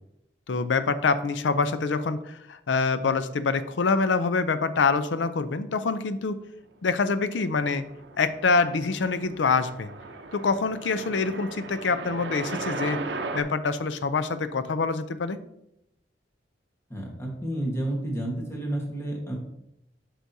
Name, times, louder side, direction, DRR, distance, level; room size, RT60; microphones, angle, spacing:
voice 1, 0.5-6.4 6.8-7.8 8.2-9.9 10.3-13.0 13.3-15.4, left 4 dB, 85° left, 12 dB, 0.5 m, -25 dB
sound 1, 7.3-13.4, right 3 dB, 70° right, 0.7 m, -37 dB
voice 2, 16.9-19.4, right 1 dB, 15° left, -2 dB, 1.3 m, -30 dB
8.0 x 6.1 x 2.7 m, 0.79 s
head